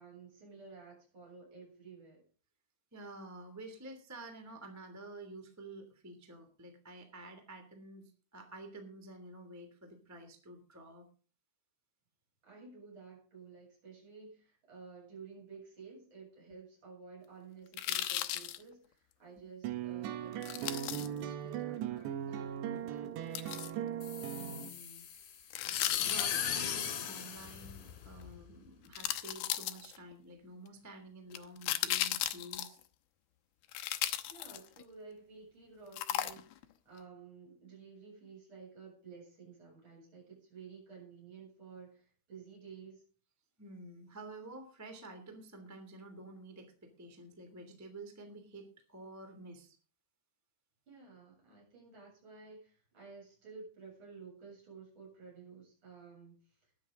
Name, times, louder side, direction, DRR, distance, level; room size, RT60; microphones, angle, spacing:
voice 1, 0.0-2.2 12.4-23.8 34.3-43.0 50.9-56.4, right 5 dB, 25° right, -3 dB, 8.4 m, -53 dB
voice 2, 2.9-11.1 19.8-19.9 20.5-20.7 24.3-25.1 26.0-32.8 43.6-49.8, right 2 dB, 5° right, 5 dB, 1.7 m, -50 dB
sound 1, 17.7-18.6 20.4-21.1 23.4-23.7 25.5-26.6 28.2-28.3 28.9-30.1 31.3-32.8 33.7-34.8 35.9-36.6 37.0-37.1, left 13 dB, 75° left, 2.2 m, -36 dB
sound 2, 19.6-24.7, right 10 dB, 70° right, 3.1 m, -39 dB
sound 3, 24.0-28.4, left 8 dB, 55° left, 3.2 m, -38 dB
20.5 x 9.3 x 3.9 m, 0.39 s
omnidirectional pair, 5.4 m